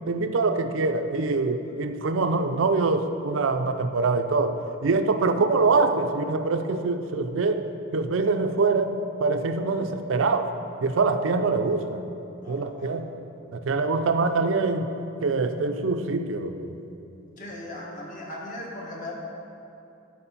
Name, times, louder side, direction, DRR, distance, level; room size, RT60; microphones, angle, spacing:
voice 1, 0.1-4.5 4.8-7.7 7.9-8.9 9.2-10.5 10.8-12.0 12.5-13.1 13.5-14.9 15.2-16.8, right 3 dB, 75° right, 7 dB, 0.5 m, -24 dB
voice 2, 12.4-13.0 17.4-19.1, left 1 dB, 40° left, -3 dB, 1.5 m, -39 dB
11.0 x 4.7 x 5.7 m, 2.8 s
head